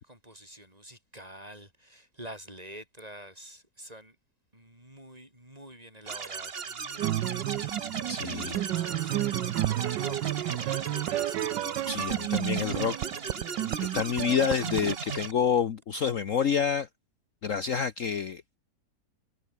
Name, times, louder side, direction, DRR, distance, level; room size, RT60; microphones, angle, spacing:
voice 1, 0.0-4.2 4.5-11.7, right 1 dB, 20° right, 8.1 m, -48 dB
sound 1, 6.1-15.3, right 6 dB, 35° right, 1.4 m, -37 dB
sound 2, 7.0-15.0, right 14 dB, 90° right, 1.4 m, -31 dB
voice 2, 8.1-8.6 11.8-13.0 13.8-16.9 17.4-18.4, left 7 dB, 50° left, 1.3 m, -28 dB
omnidirectional pair, 1.8 m